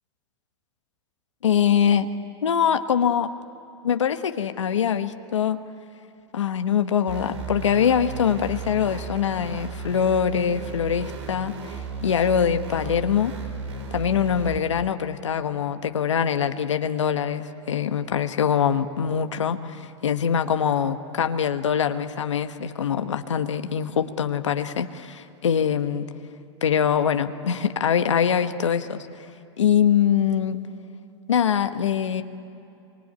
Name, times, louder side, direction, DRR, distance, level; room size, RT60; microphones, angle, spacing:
voice 1, 1.4-2.1 2.4-3.3 3.8-5.6 6.3-13.4 13.9-26.1 26.6-29.1 29.6-30.7 31.3-32.2, left 8 dB, 85° left, 8 dB, 1.2 m, -23 dB
sound 1, 7.1-14.6, right 4 dB, 80° right, 4.8 m, -35 dB
25.5 x 24.5 x 9.6 m, 2.6 s
hypercardioid pair, 110°, 15 cm